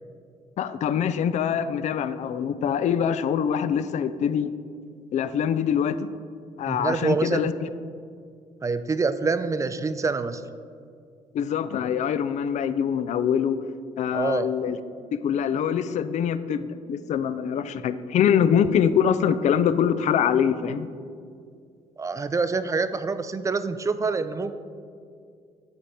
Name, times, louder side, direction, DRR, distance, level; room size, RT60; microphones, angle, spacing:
voice 1, 0.6-4.5 5.1-6.0 6.6-7.7 11.3-13.6 14.0-14.8 15.1-20.9, left 8 dB, 55° left, 14 dB, 0.4 m, -24 dB
voice 2, 6.7-7.5 8.6-10.4 14.1-14.5 22.0-24.5, right 4 dB, 20° right, 12 dB, 0.4 m, -26 dB
7.7 x 3.4 x 5.6 m, 2.2 s
cardioid pair, 75°, 14 cm